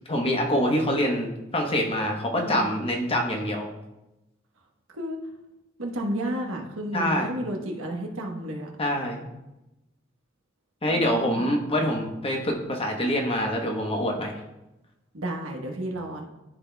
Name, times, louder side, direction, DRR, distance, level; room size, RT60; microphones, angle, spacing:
voice 1, 0.1-3.7 6.9-7.3 8.8-9.2 10.8-14.3, equal, 30° left, 1 dB, 1.0 m, -25 dB
voice 2, 2.3-2.7 4.9-5.2 5.8-8.7 10.9-11.5 15.1-16.2, right 1 dB, 90° right, 1 dB, 1.1 m, -32 dB
12.5 x 4.2 x 2.3 m, 0.96 s
head